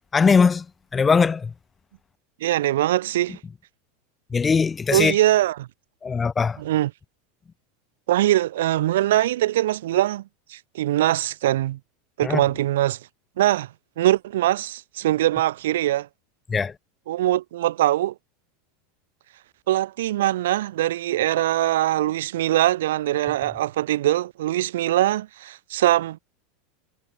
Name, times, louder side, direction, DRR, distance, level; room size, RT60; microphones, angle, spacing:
voice 1, 0.1-0.6 0.9-1.5 4.3-5.1 6.0-6.6 12.2-12.4 16.5-16.7, left 5 dB, 15° left, 0.6 m, -20 dB
voice 2, 2.4-3.4 4.9-5.7 6.6-6.9 8.1-10.2 10.5-11.8 12.2-13.0 13.4-13.7 14.0-16.1 17.1-18.1 19.7-26.2, right 14 dB, 90° right, 1.0 m, -22 dB
supercardioid pair, 145°, 0 cm